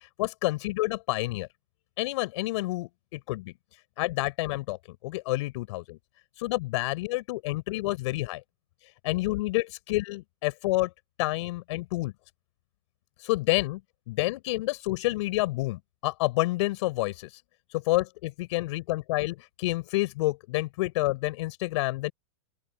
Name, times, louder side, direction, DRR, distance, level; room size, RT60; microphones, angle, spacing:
voice 1, 0.2-1.5 2.0-3.5 4.0-4.8 5.0-5.8 6.4-8.4 9.0-10.9 11.2-12.1 13.2-13.8 14.1-17.3 17.9-22.1, left 20 dB, 60° left, 5.9 m, -29 dB
open air
hypercardioid pair, 120°, 17 cm